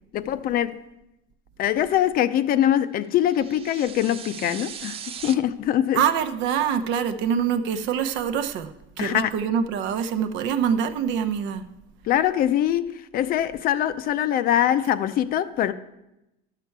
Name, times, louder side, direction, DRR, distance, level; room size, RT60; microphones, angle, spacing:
voice 1, 0.1-0.8 1.6-6.0 9.0-9.3 12.1-15.7, left 11 dB, 45° left, 0.5 m, -23 dB
sound 1, 3.2-5.3, right 8 dB, 30° right, 0.4 m, -38 dB
voice 2, 5.9-8.7 9.0-11.6, right 8 dB, 60° right, 0.8 m, -25 dB
11.5 x 6.8 x 4.6 m
cardioid pair, 135°, 21 cm